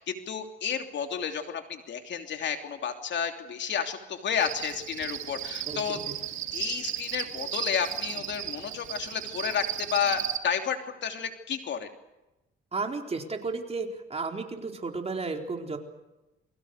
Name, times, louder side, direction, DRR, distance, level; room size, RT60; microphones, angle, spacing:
voice 1, 0.0-6.0 6.5-11.9, left 7 dB, 65° left, 5 dB, 3.0 m, -31 dB
Cricket, 4.4-10.4, right 11 dB, 85° right, 1.9 m, -35 dB
voice 2, 5.7-6.1 12.7-15.8, right 3 dB, 30° right, 3 dB, 4.2 m, -33 dB
29.0 x 23.0 x 6.7 m, 1.0 s
cardioid pair, 90°, 20 cm